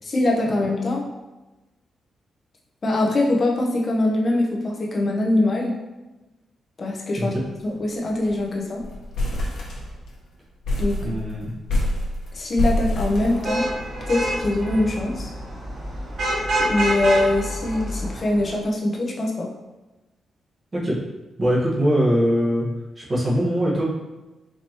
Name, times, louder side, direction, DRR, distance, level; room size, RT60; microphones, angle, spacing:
voice 1, 0.0-1.0 2.8-5.7 6.8-7.3 7.6-8.8 10.8-11.0 12.3-13.7 14.1-15.3 16.6-19.5, left 2 dB, 35° left, -1 dB, 0.7 m, -22 dB
sound 1, 7.1-7.4 7.7-7.8 8.1-8.4 8.8-10.2 10.6-13.9, left 1 dB, 75° left, 1.0 m, -26 dB
voice 2, 11.0-11.5 20.7-21.0 21.4-22.7 23.0-23.8, equal, 25° right, -7 dB, 1.2 m, -22 dB
Vehicle horn car horn honking / Traffic noise roadway noise, 13.2-18.5, right 1 dB, 60° right, 1.3 m, -27 dB
4.6 x 2.9 x 2.9 m, 1.1 s
cardioid pair, 120°, 0 cm